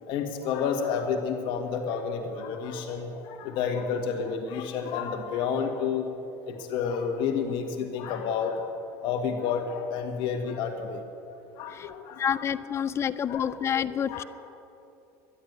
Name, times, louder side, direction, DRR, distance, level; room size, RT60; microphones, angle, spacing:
voice 1, 0.0-6.1 6.5-8.7 9.0-11.0 11.6-12.5 12.8-13.0 13.3-13.6 14.0-14.2, left 6 dB, 60° left, 4 dB, 1.8 m, -30 dB
voice 2, 12.2-14.2, left 8 dB, 30° left, 15 dB, 0.4 m, -28 dB
12.0 x 11.0 x 9.5 m, 2.8 s
supercardioid pair, 130°, 10 cm